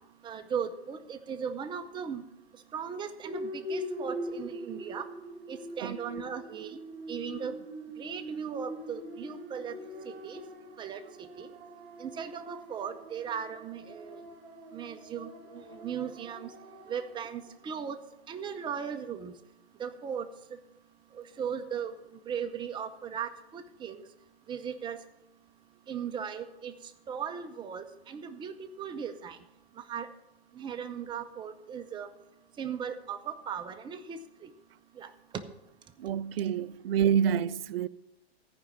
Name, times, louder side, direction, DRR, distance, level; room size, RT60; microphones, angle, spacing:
voice 1, 0.2-2.2 2.7-5.1 5.5-6.7 7.1-7.5 8.0-9.8 10.0-10.4 10.8-11.0 11.4-11.5 12.0-14.2 14.7-16.5 16.9-18.0 18.3-19.3 19.8-20.3 21.4-21.9 22.3-24.0 24.5-25.0 25.9-26.7 27.1-29.4 29.9-30.1 30.6-32.1 32.6-34.5 35.0-35.1 35.3-35.4, right 7 dB, 15° right, 0.6 m, -37 dB
sound 1, 3.2-17.4, equal, 35° right, 2.1 m, -42 dB
voice 2, 36.0-37.9, right 9 dB, 65° right, 0.5 m, -27 dB
14.0 x 5.2 x 7.0 m
hypercardioid pair, 115°, 32 cm